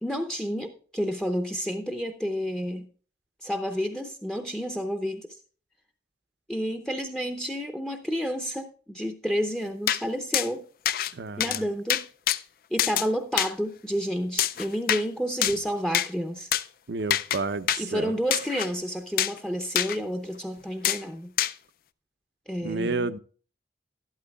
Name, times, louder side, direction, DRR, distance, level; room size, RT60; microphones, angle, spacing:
voice 1, 0.0-2.9 3.4-5.3 6.5-10.7 11.4-12.1 12.7-16.5 17.8-21.3 22.5-23.1, equal, 5° left, 0.6 m, -30 dB
sound 1, 9.9-10.0 10.3-10.5 10.9-11.1 11.4-11.6 11.9-12.4 12.8-13.1 13.4-13.5 14.4-15.0 15.4-15.6 15.9-16.1 16.5-16.6 17.1-17.4 17.7-17.8 18.3-18.7 19.2-19.4 19.8-20.0 20.8-21.0 21.4-21.5, left 11 dB, 50° left, 0.4 m, -25 dB
voice 2, 11.1-11.6 16.9-18.1 22.6-23.2, right 3 dB, 75° right, 0.6 m, -30 dB
12.0 x 11.5 x 2.3 m
head